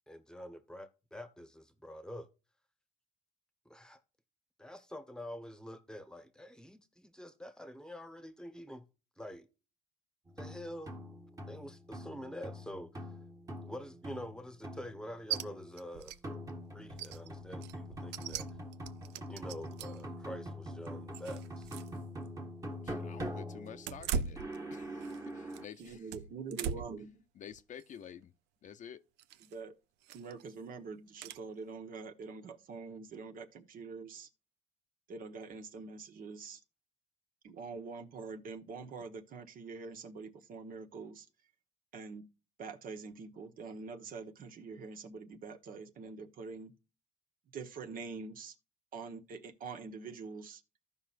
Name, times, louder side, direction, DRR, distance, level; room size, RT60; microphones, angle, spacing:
voice 1, 0.1-2.3 3.6-4.0 4.6-8.9 9.2-9.5 10.4-10.9 11.4-13.1 13.6-16.2 16.7-18.5 19.3-21.7, equal, 5° left, 1.2 m, -46 dB
sound 1, 10.3-25.7, equal, 20° right, 1.5 m, -44 dB
sound 2, 15.3-15.4 15.8-16.2 16.5-16.6 16.9-20.1 20.6-22.0 22.3-22.4 23.8-25.2 25.5-27.0 27.5-27.8 29.2-29.6 30.0-30.4 31.2-31.4, right 7 dB, 85° right, 0.6 m, -40 dB
voice 2, 22.8-24.4 24.7-26.1 27.4-28.3 28.6-29.0, left 9 dB, 50° left, 0.6 m, -50 dB
voice 3, 25.8-27.2 29.5-29.7 30.1-34.3 35.1-36.6 37.4-41.3 41.9-42.3 42.6-46.7 47.5-48.5 48.9-50.6, right 4 dB, 55° right, 1.2 m, -45 dB
15.0 x 5.5 x 2.5 m
cardioid pair, 110°, 17 cm